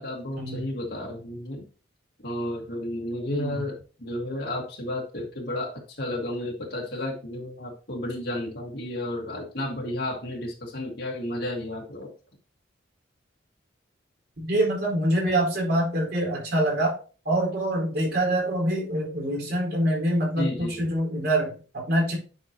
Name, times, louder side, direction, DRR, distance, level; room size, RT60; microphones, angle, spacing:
voice 1, 0.0-1.6 2.2-12.1 20.4-20.8, left 1 dB, 55° left, -1 dB, 1.7 m, -32 dB
voice 2, 3.3-3.6 14.4-17.0 17.2-22.1, right 1 dB, 55° right, -1 dB, 4.2 m, -25 dB
9.4 x 5.8 x 2.9 m, 0.36 s
head